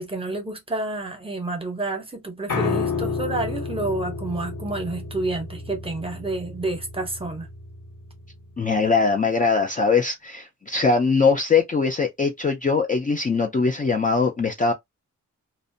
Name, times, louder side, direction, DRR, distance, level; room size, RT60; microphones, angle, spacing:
voice 1, 0.0-7.5, right 2 dB, 20° right, 0.8 m, -29 dB
Piano, 2.5-8.7, left 4 dB, 80° left, 1.0 m, -31 dB
voice 2, 8.6-14.7, left 4 dB, 25° left, 0.4 m, -21 dB
2.5 x 2.1 x 2.5 m
wide cardioid pair, 125°, 31 cm